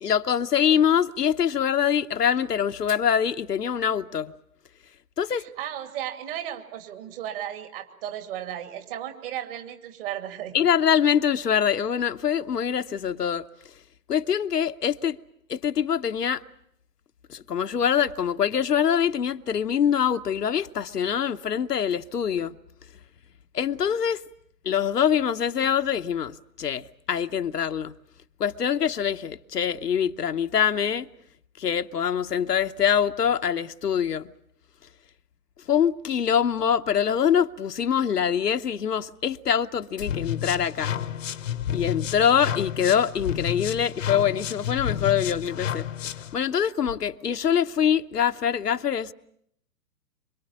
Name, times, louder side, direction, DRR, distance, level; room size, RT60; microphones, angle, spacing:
voice 1, 0.0-4.3 5.2-5.4 10.5-13.8 14.1-15.2 15.5-16.4 17.3-22.6 23.5-24.2 24.6-27.9 28.4-31.1 31.6-34.3 35.7-40.9 41.7-45.9 46.3-49.1, left 8 dB, 70° left, 1.0 m, -24 dB
voice 2, 5.6-10.5, right 11 dB, 35° right, 2.7 m, -35 dB
sound 1, 40.0-46.3, left 10 dB, 50° left, 1.1 m, -31 dB
25.5 x 24.0 x 7.3 m
figure-of-eight pair, 125°, 50 cm